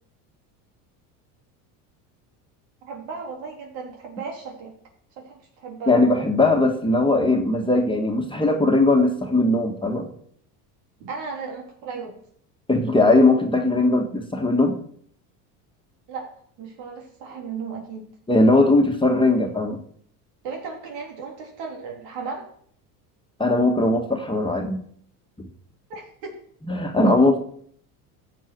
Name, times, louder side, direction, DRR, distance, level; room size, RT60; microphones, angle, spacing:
voice 1, 2.8-4.7 5.2-6.0 11.0-12.2 16.1-16.3 16.6-18.0 20.4-22.5 25.9-26.4, right 5 dB, 70° right, 1 dB, 3.7 m, -35 dB
voice 2, 5.9-10.1 12.7-14.8 18.3-19.8 23.4-24.8 25.4-25.5 26.7-27.4, left 2 dB, 10° left, 2 dB, 1.8 m, -19 dB
14.0 x 7.7 x 4.7 m, 0.62 s
supercardioid pair, 100°, 45 cm